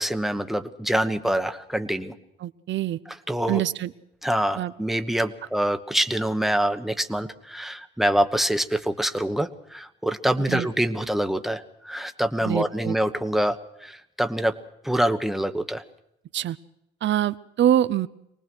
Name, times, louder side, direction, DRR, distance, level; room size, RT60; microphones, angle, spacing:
voice 1, 0.0-2.1 3.3-3.6 4.2-14.6 14.8-15.8, right 1 dB, ahead, 7 dB, 1.2 m, -25 dB
voice 2, 2.4-3.0 3.5-3.9 4.6-4.7 10.5-10.7 12.4-12.9 16.3-16.6 17.0-18.1, right 11 dB, 65° right, 14 dB, 0.8 m, -24 dB
24.0 x 19.0 x 6.2 m, 0.81 s
cardioid pair, 90°, 20 cm